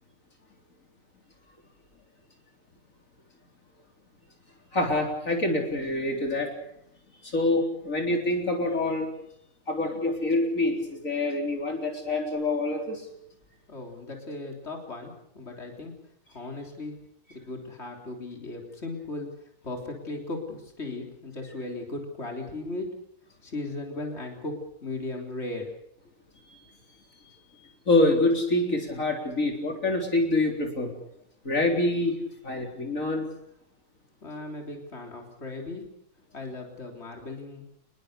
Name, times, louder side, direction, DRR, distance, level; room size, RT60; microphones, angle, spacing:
voice 1, 4.7-6.5 7.2-9.1 9.7-13.1 26.4-26.6 27.9-30.9 31.4-32.2 32.4-33.2, left 2 dB, 70° left, 2 dB, 4.2 m, -26 dB
voice 2, 13.7-15.9 16.3-17.0 17.3-22.9 23.4-25.7 34.2-35.8 36.3-37.6, left 2 dB, 50° left, 1 dB, 3.9 m, -37 dB
26.5 x 21.0 x 6.7 m, 0.76 s
omnidirectional pair, 1.4 m